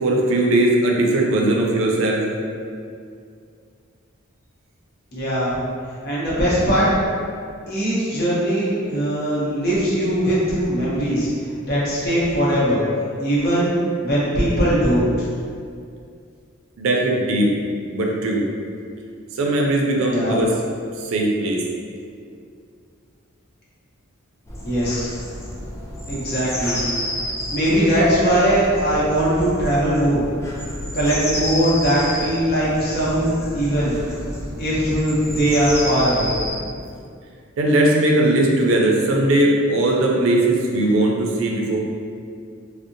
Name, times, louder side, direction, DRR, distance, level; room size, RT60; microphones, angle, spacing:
voice 1, 0.0-2.3 16.8-17.5 17.9-18.4 19.4-20.5 21.0-21.6 37.6-41.8, right 1 dB, 70° right, -1 dB, 0.4 m, -19 dB
voice 2, 5.1-5.6 6.0-6.9 7.7-11.3 11.6-12.8 13.2-13.7 14.0-15.3 20.1-20.4 24.6-25.1 26.1-26.8 27.5-30.2 30.9-33.9 34.6-36.3, right 1 dB, 50° left, -7 dB, 0.7 m, -20 dB
sound 1, 24.5-36.6, left 1 dB, 15° left, 0.3 m, -30 dB
2.6 x 2.0 x 2.5 m, 2.3 s
head